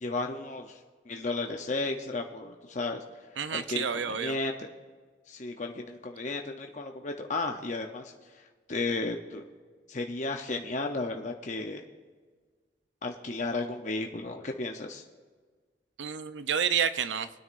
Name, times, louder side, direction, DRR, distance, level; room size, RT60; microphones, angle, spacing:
voice 1, 0.0-0.8 1.1-3.0 3.5-4.5 5.3-8.1 8.7-9.4 9.9-11.8 13.0-15.0, left 3 dB, 40° left, 3 dB, 0.7 m, -33 dB
voice 2, 3.4-4.4 16.0-17.3, right 7 dB, 80° right, 12 dB, 0.6 m, -29 dB
25.0 x 9.6 x 2.6 m, 1.5 s
head